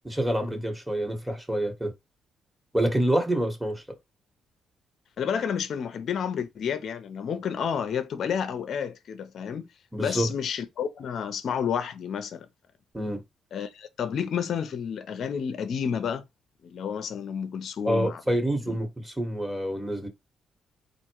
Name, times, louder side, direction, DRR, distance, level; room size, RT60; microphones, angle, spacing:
voice 1, 0.0-1.9 2.7-3.8 9.9-10.3 12.9-13.2 17.8-20.1, right 1 dB, 5° right, 1.7 m, -27 dB
voice 2, 5.2-9.7 10.0-12.5 13.5-16.2 16.6-18.2 18.7-18.8, left 7 dB, 60° left, 0.8 m, -30 dB
4.3 x 2.6 x 4.7 m
cardioid pair, 90°, 0 cm